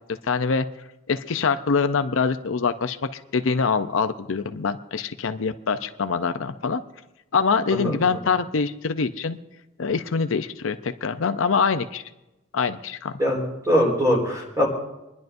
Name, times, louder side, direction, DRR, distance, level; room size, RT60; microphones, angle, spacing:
voice 1, 0.2-0.7 1.1-6.8 7.3-9.4 9.8-12.0 12.5-13.2, left 5 dB, 75° left, 9 dB, 0.6 m, -24 dB
voice 2, 13.2-14.7, equal, 15° right, -2 dB, 4.0 m, -22 dB
28.0 x 10.5 x 2.6 m, 0.95 s
head